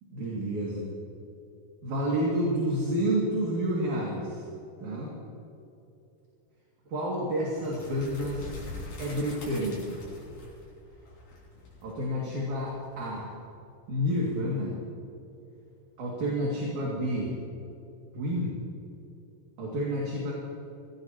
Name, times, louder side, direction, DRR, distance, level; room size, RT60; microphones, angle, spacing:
voice 1, 0.1-0.8 1.8-4.4 4.8-5.2 6.9-8.6 9.0-10.1 11.8-13.3 13.9-14.8 16.0-17.3 18.1-18.6 19.6-20.3, equal, 50° right, -4 dB, 3.5 m, -29 dB
sound 1, 7.5-13.3, left 2 dB, 65° left, 6.6 m, -44 dB
25.0 x 18.0 x 3.0 m, 2.8 s
omnidirectional pair, 4.7 m